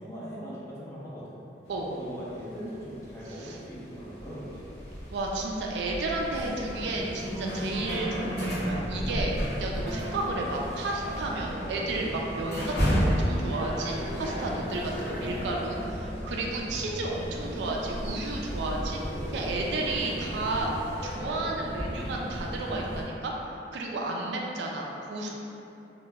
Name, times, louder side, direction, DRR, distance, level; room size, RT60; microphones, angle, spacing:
voice 1, 0.0-1.4 1.9-4.8, equal, 15° left, -8 dB, 0.5 m, -40 dB
sound 1, 1.6-21.2, equal, 40° left, 1.1 m, -46 dB
voice 2, 5.1-19.0 19.3-20.7 21.0-23.3 23.7-25.4, right 2 dB, 70° right, -1 dB, 0.3 m, -32 dB
sound 2, 6.1-23.0, equal, 65° left, 0.8 m, -33 dB
2.2 x 2.0 x 3.3 m, 2.9 s
head